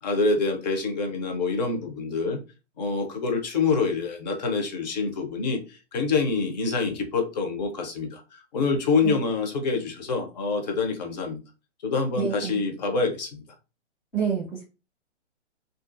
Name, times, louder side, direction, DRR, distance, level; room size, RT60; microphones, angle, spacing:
voice 1, 0.0-2.4 2.8-11.4 11.8-13.4, left 4 dB, 35° left, 4 dB, 0.7 m, -26 dB
voice 2, 12.2-12.6 14.1-14.6, right 7 dB, 10° left, -7 dB, 0.4 m, -28 dB
2.5 x 2.3 x 2.5 m, 0.31 s
figure-of-eight pair, 130°, 36 cm